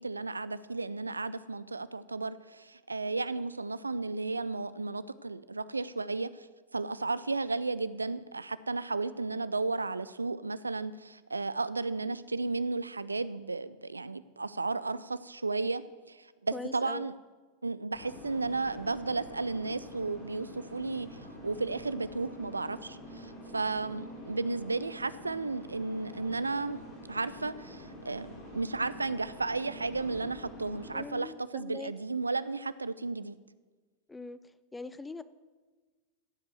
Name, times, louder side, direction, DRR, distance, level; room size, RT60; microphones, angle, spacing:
voice 1, 0.0-6.5 6.7-17.1 17.6-26.8 27.1-33.4, right 3 dB, 80° right, 16 dB, 0.4 m, -34 dB
voice 2, 16.5-17.1 30.9-31.9 34.1-34.4 34.7-35.2, left 3 dB, 10° left, 15 dB, 0.5 m, -41 dB
sound 1, 17.9-31.0, equal, 45° left, 4.0 m, -47 dB
15.5 x 5.3 x 7.6 m, 1.3 s
figure-of-eight pair, 90°, 0 cm